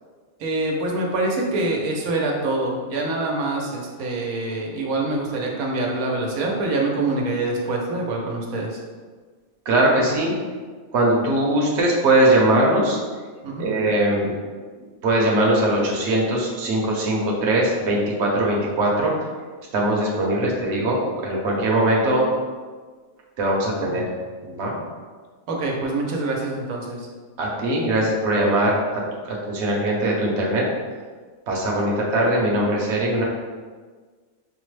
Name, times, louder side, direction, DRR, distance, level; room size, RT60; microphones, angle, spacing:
voice 1, 0.4-8.8 10.0-10.1 13.4-13.7 23.9-24.0 25.5-27.1, right 2 dB, 90° right, -1 dB, 1.1 m, -25 dB
voice 2, 9.7-10.3 10.9-13.0 13.6-14.3 15.0-19.1 19.7-21.0 21.2-22.2 23.4-24.0 24.4-24.8 27.4-30.6 31.5-33.2, right 1 dB, 60° right, -3 dB, 0.9 m, -21 dB
5.2 x 2.1 x 3.1 m, 1.5 s
omnidirectional pair, 1.4 m